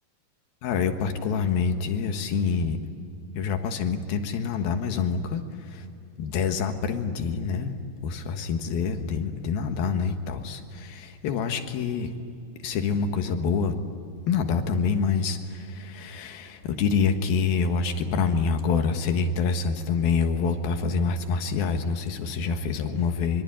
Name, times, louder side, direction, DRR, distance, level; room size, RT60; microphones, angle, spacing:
voice 1, 0.6-2.8 3.4-5.9 6.2-7.8 8.0-12.1 12.6-13.7 14.3-23.4, left 5 dB, 70° left, 6 dB, 3.3 m, -26 dB
24.5 x 24.0 x 9.0 m, 2.5 s
omnidirectional pair, 4.6 m